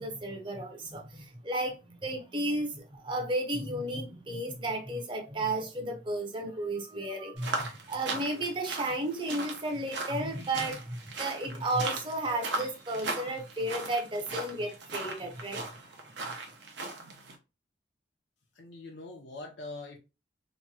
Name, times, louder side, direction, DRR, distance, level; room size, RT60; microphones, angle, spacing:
voice 1, 0.0-15.9, right 1 dB, 25° right, 0.6 m, -33 dB
sound 1, 7.4-17.3, right 3 dB, 80° right, 0.7 m, -38 dB
voice 2, 18.5-20.0, left 2 dB, 85° left, 0.7 m, -43 dB
3.0 x 2.2 x 2.7 m
head